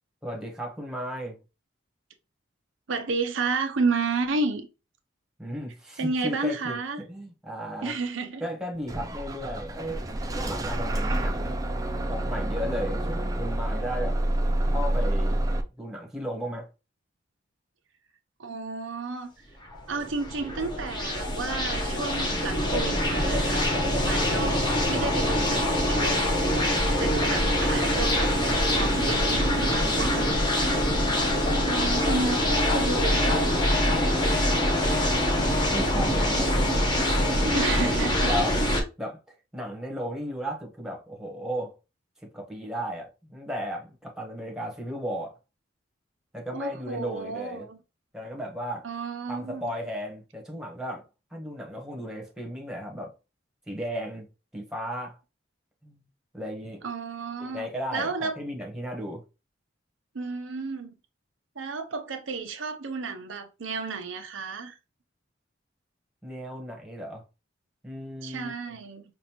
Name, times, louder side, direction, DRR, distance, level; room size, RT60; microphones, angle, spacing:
voice 1, 0.2-1.4 5.4-6.8 7.1-7.9 8.4-10.0 10.3-11.6 12.1-14.2 14.6-15.4 15.8-16.7 29.5-30.3 32.4-32.5 35.7-36.8 37.3-37.7 38.1-38.6 39.0-39.2 39.5-41.7 42.3-45.3 46.3-47.7 48.1-48.9 49.3-51.0 51.3-53.1 53.7-54.3 54.5-55.2 55.8-56.0 56.3-56.8 57.4-59.2 66.2-67.2 67.8-68.5, equal, 5° right, 1.1 m, -35 dB
voice 2, 2.9-4.7 6.0-7.0 7.8-8.4 18.4-19.3 19.9-23.7 24.0-30.4 31.6-34.1 37.5-38.3 46.5-47.8 48.8-49.7 56.8-57.7 57.9-58.4 60.1-60.9 61.6-64.8 68.2-69.0, right 4 dB, 85° right, 0.7 m, -32 dB
Bus / Engine starting, 8.9-15.6, right 1 dB, 20° right, 0.4 m, -28 dB
sound 1, 19.7-38.8, left 1 dB, 25° left, 1.0 m, -24 dB
5.3 x 2.5 x 2.9 m
head